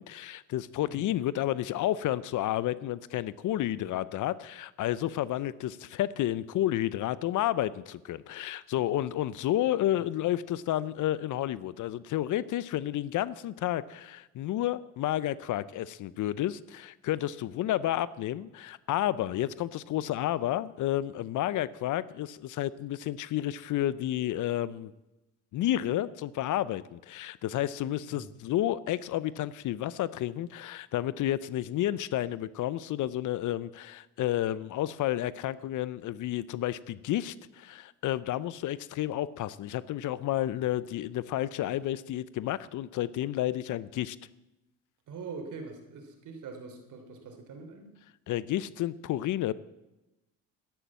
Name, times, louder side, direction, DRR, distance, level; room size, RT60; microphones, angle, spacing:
voice 1, 0.0-24.9 25.5-44.2 48.3-49.5, left 13 dB, 55° left, 18 dB, 0.6 m, -31 dB
voice 2, 45.1-47.9, right 4 dB, 60° right, 5 dB, 3.4 m, -43 dB
12.0 x 10.5 x 7.4 m, 0.98 s
supercardioid pair, 85°, 36 cm